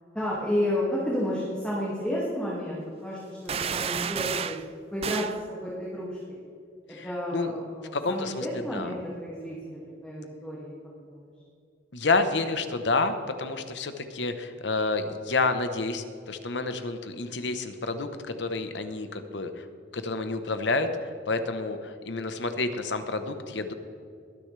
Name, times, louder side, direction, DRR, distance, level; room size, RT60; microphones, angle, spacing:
voice 1, 0.1-4.6 4.9-6.4 7.0-10.7 11.1-11.3, equal, 5° left, -7 dB, 2.1 m, -31 dB
sound 1, 3.5-4.6 5.0-5.4, right 7 dB, 35° right, 0.3 m, -31 dB
voice 2, 7.9-8.5 8.7-8.9 11.9-19.6 19.9-23.7, left 3 dB, 75° left, 8 dB, 1.0 m, -29 dB
21.5 x 10.0 x 3.3 m, 2.5 s
head